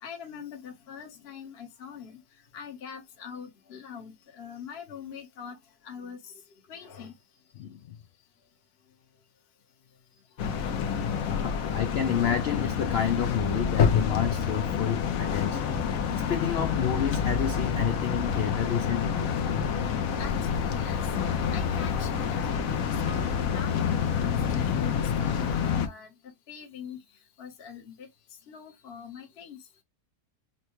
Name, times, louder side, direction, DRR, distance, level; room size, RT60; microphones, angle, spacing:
voice 1, 0.0-2.2 2.5-5.6 5.8-6.3 6.7-7.1 11.0-11.1 20.2-26.1 26.5-27.0 27.4-28.1 28.5-29.6, left 7 dB, 45° left, 1.1 m, -42 dB
voice 2, 7.6-8.0 11.3-15.8 16.3-19.2, left 8 dB, 85° left, 0.5 m, -30 dB
sound 1, 10.4-25.9, left 7 dB, 65° left, 1.1 m, -28 dB
5.6 x 2.1 x 3.0 m
omnidirectional pair, 1.7 m